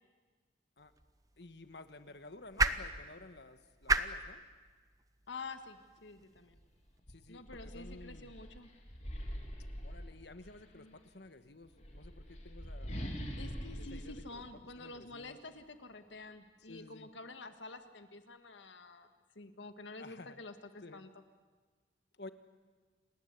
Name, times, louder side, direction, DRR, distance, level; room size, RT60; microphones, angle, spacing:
sound 1, 0.8-7.0, right 3 dB, 20° right, 0.9 m, -38 dB
voice 1, 1.4-4.4 7.1-8.3 9.8-13.2 13.8-14.4 14.8-15.4 16.6-17.1 20.0-20.4 20.8-21.1 22.1-22.3, left 2 dB, 65° left, 10 dB, 1.4 m, -53 dB
voice 2, 5.3-6.6 7.3-8.7 10.8-11.0 13.4-21.1, left 3 dB, 85° left, 8 dB, 1.8 m, -49 dB
sound 2, 6.5-6.6 7.0-10.7 11.6-15.3, equal, 40° left, 3.3 m, -44 dB
29.0 x 19.5 x 8.4 m, 1.5 s
head